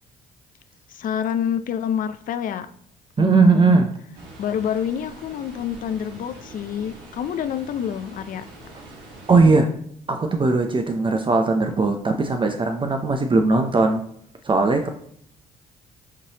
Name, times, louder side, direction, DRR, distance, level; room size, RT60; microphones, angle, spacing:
voice 1, 0.9-2.7 3.2-3.9 4.4-8.5, left 9 dB, 55° left, 12 dB, 0.4 m, -27 dB
voice 2, 3.2-3.9 9.3-9.7 10.1-14.0 14.4-14.9, right 3 dB, 30° right, 5 dB, 0.6 m, -19 dB
sound 1, 4.1-9.6, right 2 dB, 80° right, 1.4 m, -43 dB
5.8 x 3.0 x 2.9 m, 0.67 s
supercardioid pair, 65°, 17 cm